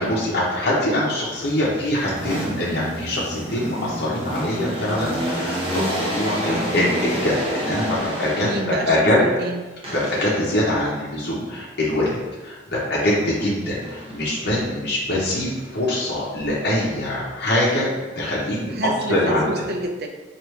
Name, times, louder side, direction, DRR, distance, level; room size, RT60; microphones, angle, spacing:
voice 1, 0.0-8.5 8.9-9.2 9.9-17.9 18.2-18.7 19.1-19.5, left 1 dB, 60° left, -6 dB, 0.7 m, -23 dB
sound 1, 1.3-8.9 9.8-10.6 13.8-14.6 15.1-17.5, equal, 30° right, 0.8 m, -30 dB
voice 2, 6.5-6.8 8.4-9.6 13.6-13.8 18.7-20.1, right 2 dB, 55° right, 4 dB, 0.5 m, -28 dB
4.7 x 2.4 x 3.1 m, 1.2 s
head